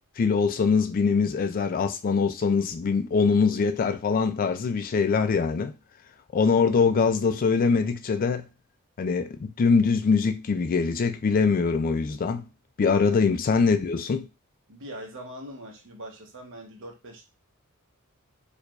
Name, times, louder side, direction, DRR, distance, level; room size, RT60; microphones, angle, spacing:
voice 1, 0.2-5.7 6.3-8.5 9.0-12.4 12.8-14.3, left 5 dB, 40° left, 0.3 m, -23 dB
voice 2, 12.9-13.3 14.7-17.3, right 1 dB, 60° right, 1.0 m, -42 dB
4.6 x 2.4 x 2.3 m
head